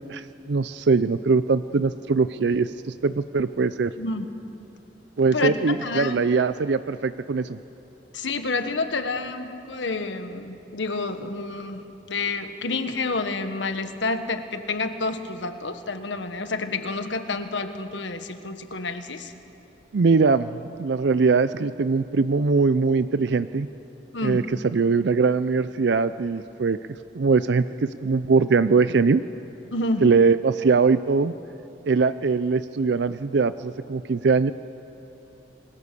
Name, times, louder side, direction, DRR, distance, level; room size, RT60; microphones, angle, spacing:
voice 1, 0.1-3.9 5.2-7.6 19.9-23.7 24.2-26.8 27.1-29.2 30.0-31.3 31.9-34.5, right 4 dB, 65° right, 13 dB, 0.5 m, -21 dB
voice 2, 5.8-6.3 8.1-19.3 24.1-24.4 29.7-30.1, left 3 dB, 75° left, 8 dB, 1.4 m, -29 dB
28.0 x 21.5 x 6.9 m, 3.0 s
head